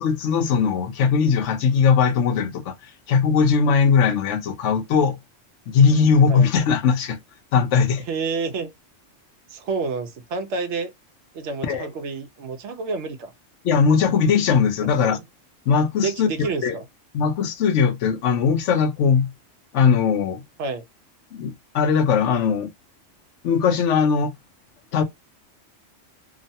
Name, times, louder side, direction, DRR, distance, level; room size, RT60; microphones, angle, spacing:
voice 1, 0.0-2.7 3.1-5.2 5.7-7.2 7.5-8.0 11.6-11.9 13.6-15.2 15.7-16.7 17.1-19.3 19.7-20.4 21.3-22.7 23.4-24.3 24.9-25.0, left 6 dB, 70° left, 1.0 m, -19 dB
voice 2, 8.1-8.7 9.5-10.9 11.3-13.3 15.0-15.2 16.0-16.9 20.6-20.8, right 4 dB, 70° right, 0.9 m, -29 dB
3.0 x 2.1 x 2.6 m
omnidirectional pair, 1.3 m